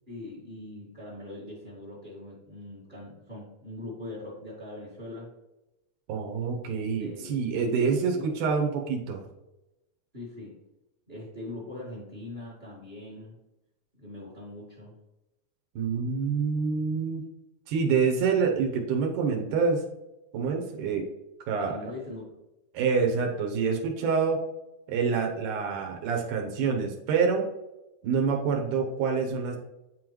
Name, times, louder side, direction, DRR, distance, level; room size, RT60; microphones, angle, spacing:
voice 1, 0.1-5.3 6.7-7.5 7.7-8.3 10.1-10.5 11.1-13.4 13.9-14.9 21.6-22.4, left 2 dB, 35° right, -5 dB, 0.8 m, -41 dB
voice 2, 6.1-9.3 15.8-17.3 17.7-19.8 20.3-21.1 21.5-21.8 22.7-24.4 24.9-27.5 28.0-29.6, right 5 dB, 85° right, 1 dB, 2.3 m, -27 dB
9.5 x 3.8 x 3.0 m, 0.96 s
omnidirectional pair, 3.5 m